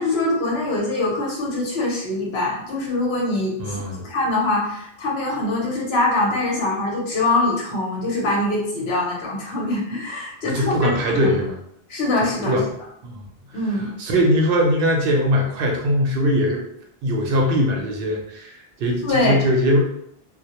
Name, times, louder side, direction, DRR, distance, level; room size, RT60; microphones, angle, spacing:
voice 1, 0.0-11.4 11.9-12.6 13.5-13.9 19.0-19.4, left 2 dB, 75° left, -3 dB, 1.0 m, -23 dB
voice 2, 3.6-4.0 10.5-11.6 12.5-12.7 13.0-13.2 14.0-16.6 17.0-19.8, equal, 65° right, 0 dB, 0.7 m, -20 dB
2.1 x 2.1 x 2.8 m, 0.73 s
omnidirectional pair, 1.1 m